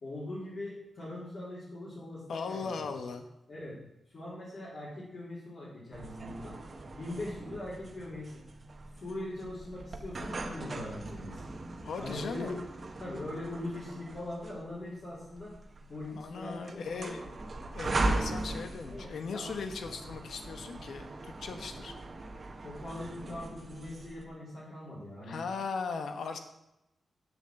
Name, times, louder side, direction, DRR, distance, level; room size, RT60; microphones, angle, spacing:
voice 1, 0.0-2.7 3.5-3.8 4.1-6.6 6.9-8.4 9.0-11.4 12.0-12.6 13.0-15.6 15.9-17.1 18.9-19.5 19.8-19.9 22.6-25.4, left 1 dB, 50° left, -10 dB, 4.0 m, -41 dB
voice 2, 2.3-3.3 11.8-12.6 16.1-17.4 17.7-21.9 25.2-26.4, left 5 dB, 80° left, 7 dB, 1.2 m, -38 dB
sound 1, 5.9-24.2, right 2 dB, 35° right, 1.2 m, -39 dB
8.4 x 7.2 x 7.7 m, 0.89 s
wide cardioid pair, 140°, 0 cm